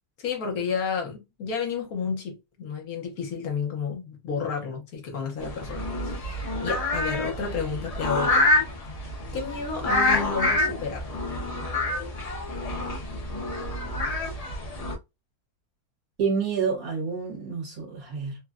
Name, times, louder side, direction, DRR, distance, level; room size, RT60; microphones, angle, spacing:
voice 1, 0.2-8.4 9.3-11.1, left 5 dB, 70° left, 1.3 m, -31 dB
sound 1, 5.4-14.9, left 2 dB, 55° left, 0.4 m, -27 dB
voice 2, 16.2-18.4, right 6 dB, 65° right, 1.6 m, -28 dB
3.3 x 2.2 x 2.4 m
omnidirectional pair, 1.7 m